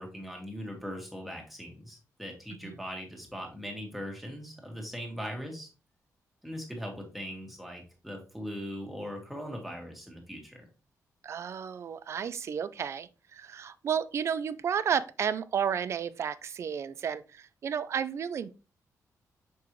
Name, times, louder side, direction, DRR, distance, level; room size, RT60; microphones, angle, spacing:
voice 1, 0.0-5.7 6.4-10.6, equal, ahead, 1.8 m, -40 dB
voice 2, 11.2-18.5, right 7 dB, 50° right, 0.4 m, -32 dB
6.8 x 5.3 x 3.1 m
wide cardioid pair, 170°, 6 cm